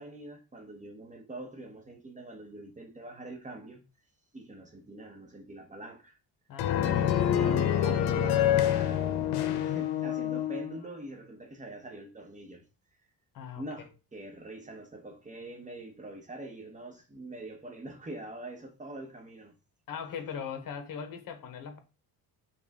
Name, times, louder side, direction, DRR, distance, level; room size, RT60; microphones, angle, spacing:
voice 1, 0.0-3.8 4.3-6.2 6.9-12.6 13.6-19.5, right 2 dB, 20° right, 0.9 m, -44 dB
voice 2, 6.5-7.6 13.3-13.6 19.9-21.8, left 7 dB, 60° left, 1.1 m, -40 dB
sound 1, 6.6-10.7, left 10 dB, 80° left, 0.7 m, -26 dB
5.4 x 2.4 x 3.5 m
cardioid pair, 115°, 38 cm